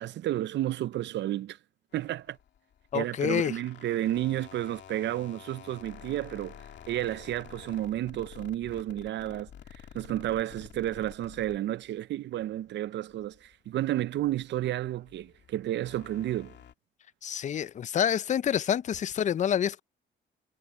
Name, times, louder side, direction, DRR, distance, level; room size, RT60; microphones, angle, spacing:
voice 1, 0.0-1.6 1.9-2.4 2.9-16.6, right 13 dB, 65° right, 0.5 m, -32 dB
sound 1, 1.9-12.6 12.9-16.7, left 9 dB, 65° left, 2.3 m, -50 dB
voice 2, 2.9-3.6 17.2-19.8, left 9 dB, 40° left, 0.4 m, -27 dB
cardioid pair, 90°, 20 cm